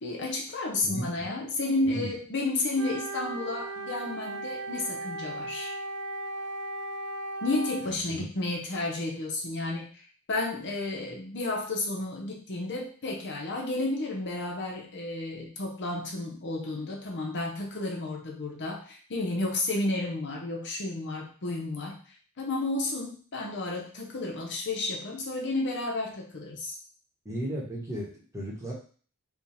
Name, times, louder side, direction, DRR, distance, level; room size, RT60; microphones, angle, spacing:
voice 1, 0.0-5.7 7.4-22.0 22.4-26.8, left 2 dB, 55° left, -1 dB, 0.8 m, -32 dB
voice 2, 0.8-1.3 1.9-2.1 7.8-8.2 27.2-28.7, equal, 15° right, -4 dB, 1.1 m, -35 dB
Wind instrument woodwind instrument, 2.7-8.0, right 2 dB, 90° right, 0.6 m, -36 dB
3.4 x 2.3 x 4.2 m, 0.42 s
head